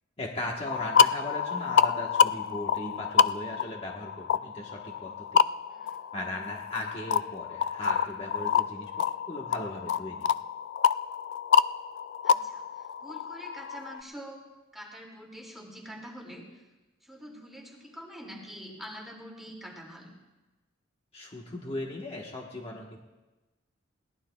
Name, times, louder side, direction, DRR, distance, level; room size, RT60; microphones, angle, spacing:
voice 1, 0.2-5.4 6.1-8.9 9.3-10.3 21.1-23.0, left 1 dB, 30° left, -1 dB, 1.2 m, -38 dB
sound 1, 0.7-14.0, left 7 dB, 65° left, 0.3 m, -27 dB
voice 2, 12.2-14.4 14.7-16.6 17.0-20.1, equal, ahead, -1 dB, 2.3 m, -45 dB
21.5 x 17.0 x 2.3 m, 1.1 s
head